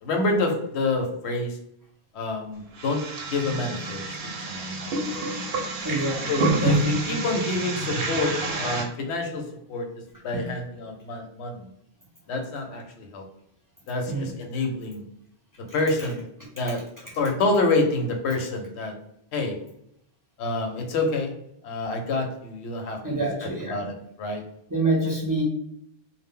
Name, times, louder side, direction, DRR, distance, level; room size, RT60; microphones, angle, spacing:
voice 1, 0.0-1.6 2.1-4.9 5.2-5.5 6.3-9.9 10.2-11.7 12.3-13.2 13.9-15.0 15.7-16.3 16.6-16.8 17.2-18.9 19.3-19.5 20.4-21.3 21.6-23.2 23.7-24.4, left 2 dB, 90° left, 3 dB, 0.9 m, -27 dB
sound 1, 2.7-8.8, right 2 dB, 65° right, 0.7 m, -28 dB
voice 2, 5.8-6.5 10.3-10.5 14.1-14.3 16.5-16.7 23.0-23.8 24.7-25.4, right 2 dB, 25° right, -5 dB, 0.5 m, -27 dB
2.1 x 2.0 x 3.5 m, 0.75 s
omnidirectional pair, 1.1 m